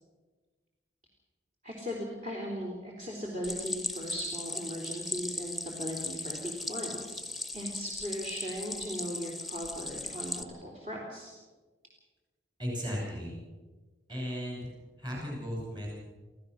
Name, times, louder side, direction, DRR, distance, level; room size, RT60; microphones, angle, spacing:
voice 1, 1.6-11.3, equal, 45° right, -1 dB, 3.6 m, -38 dB
Stream, 3.4-10.4, left 2 dB, ahead, 0.9 m, -38 dB
voice 2, 12.6-13.3 14.1-14.7 15.0-15.9, equal, 25° right, -2 dB, 6.0 m, -35 dB
26.5 x 15.5 x 6.4 m, 1.3 s
head